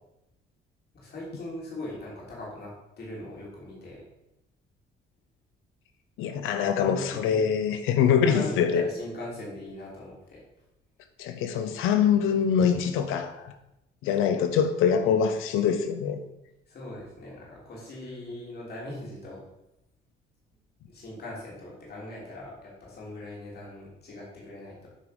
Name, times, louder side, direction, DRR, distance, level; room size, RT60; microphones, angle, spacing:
voice 1, 0.9-4.0 6.6-7.5 8.2-10.4 14.2-14.6 16.7-19.4 20.9-24.9, left 1 dB, 50° left, -4 dB, 3.4 m, -40 dB
voice 2, 6.2-8.8 11.2-13.5 14.0-16.2, left 7 dB, 85° left, 9 dB, 0.9 m, -24 dB
8.8 x 5.1 x 5.2 m, 0.89 s
cardioid pair, 95°, 21 cm